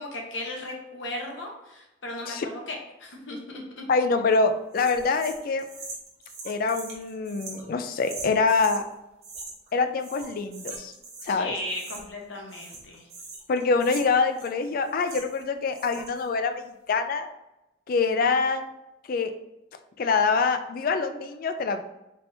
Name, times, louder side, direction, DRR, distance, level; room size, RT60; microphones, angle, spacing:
voice 1, 0.0-3.9 11.3-13.1, left 1 dB, 70° left, 0 dB, 0.9 m, -36 dB
voice 2, 3.9-5.6 6.4-8.9 9.7-10.9 11.2-11.5 13.5-17.3 17.9-18.7 19.1-19.3 20.0-21.8, left 4 dB, 45° left, 8 dB, 0.3 m, -25 dB
sound 1, 4.7-8.8 9.2-9.7 10.0-11.4 11.7-12.2 12.5-15.4 15.7-16.3, right 3 dB, 35° right, 0.9 m, -42 dB
4.3 x 3.4 x 2.6 m, 0.93 s
head